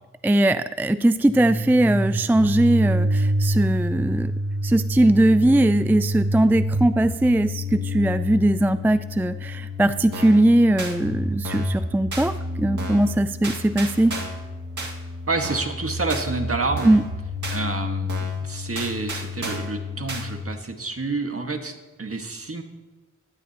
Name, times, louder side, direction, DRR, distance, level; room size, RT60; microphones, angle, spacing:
voice 1, 0.2-4.3 4.6-14.2 16.8-17.0, right 1 dB, 5° right, 12 dB, 0.4 m, -20 dB
sound 1, 1.2-20.4, equal, 90° right, 2.5 m, -29 dB
sound 2, 10.1-10.4 10.8-10.9 11.4-11.8 12.1-12.3 12.8-13.1 13.4-14.4 14.8-14.9 15.4-15.8 16.1-16.3 16.8-17.1 17.4-17.6 18.1-18.4 18.7-19.7 20.1-20.2, right 2 dB, 70° right, 2.0 m, -33 dB
voice 2, 15.3-16.9 17.5-22.6, right 3 dB, 45° right, 4 dB, 1.6 m, -29 dB
17.0 x 12.5 x 2.9 m, 1.2 s
cardioid pair, 45°, 31 cm